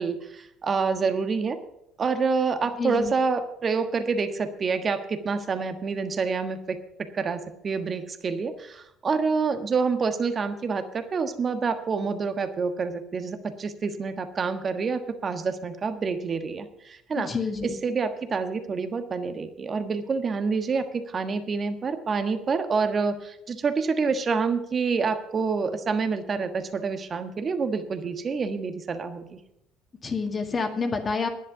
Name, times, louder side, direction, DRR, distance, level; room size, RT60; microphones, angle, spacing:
voice 1, 0.0-1.6 2.0-17.3 17.6-29.4, right 5 dB, 40° right, 9 dB, 1.4 m, -27 dB
voice 2, 2.8-3.1 17.2-17.8 30.0-31.3, left 4 dB, 35° left, 5 dB, 1.9 m, -28 dB
11.0 x 10.5 x 5.8 m, 0.80 s
hypercardioid pair, 60°, 0 cm